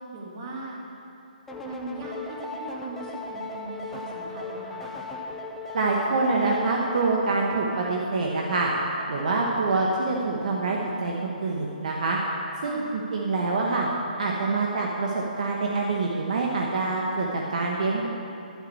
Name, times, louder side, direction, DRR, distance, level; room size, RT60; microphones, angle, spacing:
voice 1, 0.1-0.8 1.6-4.9 12.6-12.9, right 2 dB, 30° right, -2 dB, 2.0 m, -39 dB
sound 1, 1.5-10.9, left 2 dB, 5° left, 0.5 m, -38 dB
voice 2, 5.7-8.7 9.1-12.2 12.6-13.9 14.2-18.1, right 3 dB, 50° right, -1 dB, 1.2 m, -26 dB
11.5 x 5.8 x 8.6 m, 2.8 s
hypercardioid pair, 165°, 5 cm